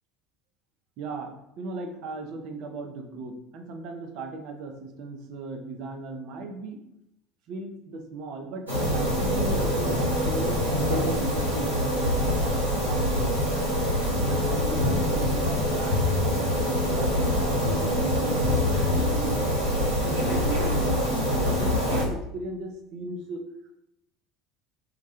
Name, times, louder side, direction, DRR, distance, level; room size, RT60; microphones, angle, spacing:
voice 1, 1.0-6.8 7.5-13.6 14.3-18.6 18.9-19.4 19.7-23.4, right 3 dB, 55° right, 5 dB, 0.3 m, -37 dB
sound 1, 8.7-22.0, left 1 dB, 90° right, 0.7 m, -25 dB
2.2 x 2.1 x 2.9 m, 0.82 s
figure-of-eight pair, 70°, 0 cm